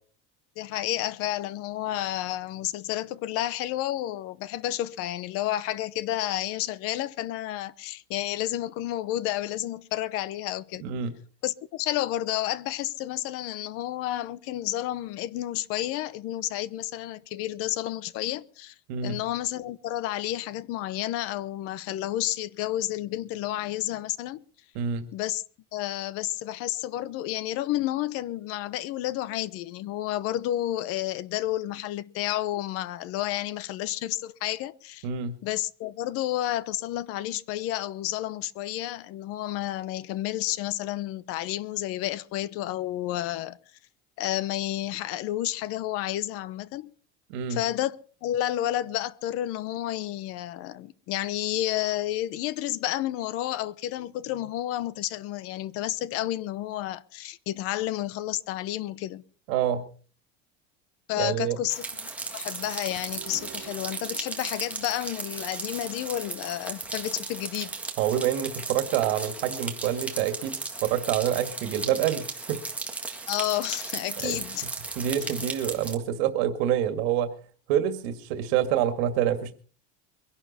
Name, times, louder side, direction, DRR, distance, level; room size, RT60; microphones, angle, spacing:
voice 1, 0.6-10.8 11.4-18.7 19.0-24.4 25.1-25.4 25.7-35.1 35.4-43.6 44.2-46.9 47.5-59.2 61.1-61.8 62.3-67.7 73.3-74.6 75.2-75.3, left 14 dB, 50° left, 0.8 m, -31 dB
voice 2, 10.8-11.1 18.9-19.2 24.7-25.1 35.0-35.4 47.3-47.6 59.5-59.9 61.2-61.6 68.0-70.5 70.8-72.6 74.2-74.4 75.0-77.3 77.7-79.5, right 10 dB, 85° right, 2.0 m, -27 dB
sound 1, 61.7-75.9, right 3 dB, 5° right, 1.7 m, -36 dB
sound 2, 63.1-65.1, right 11 dB, 45° right, 3.6 m, -48 dB
23.0 x 11.0 x 4.2 m
cardioid pair, 175°, 31 cm